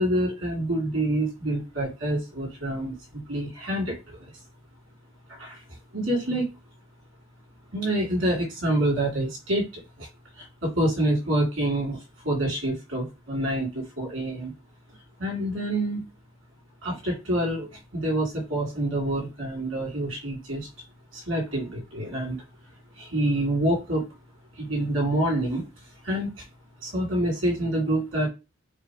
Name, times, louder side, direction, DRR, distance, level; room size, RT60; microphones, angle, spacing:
voice 1, 0.0-4.0 5.3-5.6 5.9-6.5 7.7-10.1 10.4-14.5 15.2-16.0 16.8-20.7 21.1-22.4 23.0-24.0 24.6-25.7 26.0-26.4 26.8-28.3, right 1 dB, 85° right, -2 dB, 2.5 m, -27 dB
4.9 x 2.1 x 4.7 m, 0.26 s
head